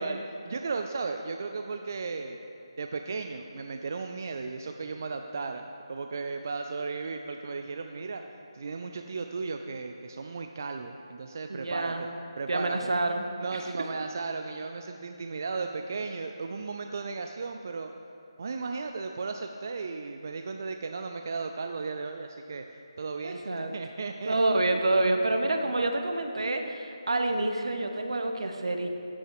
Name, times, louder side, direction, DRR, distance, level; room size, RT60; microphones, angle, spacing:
voice 1, 0.0-2.4 2.8-8.2 8.5-12.0 12.4-12.8 13.4-17.9 18.4-24.4 24.7-24.8, right 4 dB, 35° right, 5 dB, 0.3 m, -35 dB
voice 2, 11.5-12.0 12.5-13.2 13.5-13.6 23.2-23.7 24.2-28.9, right 2 dB, 70° right, 5 dB, 1.1 m, -27 dB
13.0 x 6.1 x 4.8 m, 2.7 s
figure-of-eight pair, 175°, 3 cm